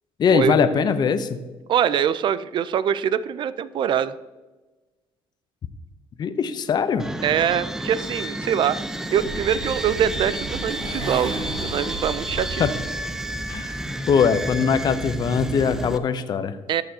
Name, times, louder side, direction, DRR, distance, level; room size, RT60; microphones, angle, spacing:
voice 1, 0.2-1.4 6.2-7.1 12.6-12.7 13.5-13.8 14.1-16.6, left 6 dB, 45° left, 10 dB, 0.6 m, -21 dB
voice 2, 1.7-4.1 7.2-8.8 9.1-11.3 11.6-12.7 16.7-16.8, right 9 dB, 55° right, 16 dB, 0.4 m, -23 dB
sound 1, 7.0-16.0, right 1 dB, 5° right, 0.6 m, -31 dB
Motorcycle, 8.9-13.6, right 2 dB, 75° right, 3.1 m, -34 dB
14.0 x 6.8 x 2.8 m, 1.2 s
cardioid pair, 100°, 10 cm